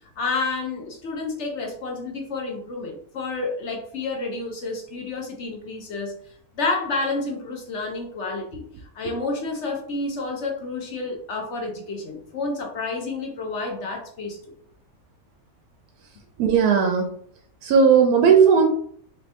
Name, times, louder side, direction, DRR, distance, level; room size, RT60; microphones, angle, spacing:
voice 1, 0.2-6.1 6.5-8.6 8.9-14.4, left 3 dB, 60° left, 1 dB, 0.9 m, -29 dB
voice 2, 16.4-17.1 17.6-18.7, right 6 dB, 85° right, 3 dB, 1.1 m, -16 dB
3.4 x 3.1 x 2.8 m, 0.62 s
omnidirectional pair, 1.6 m